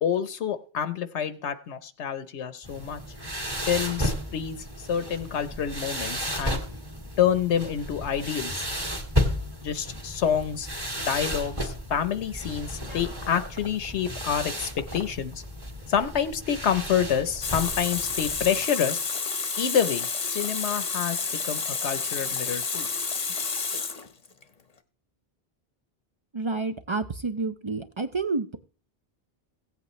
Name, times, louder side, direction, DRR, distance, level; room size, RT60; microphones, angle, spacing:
voice 1, 0.0-3.0 3.7-6.6 7.2-8.7 9.6-10.7 11.0-15.3 15.9-19.0 19.6-22.9, left 8 dB, 80° left, 12 dB, 1.0 m, -28 dB
sound 1, 2.6-18.5, equal, 20° right, 1.6 m, -33 dB
Water tap faucet, 17.4-24.4, left 4 dB, 35° left, 0.9 m, -30 dB
voice 2, 26.3-28.6, right 3 dB, 40° right, 10 dB, 0.4 m, -29 dB
16.5 x 8.3 x 3.0 m, 0.38 s
omnidirectional pair, 1.2 m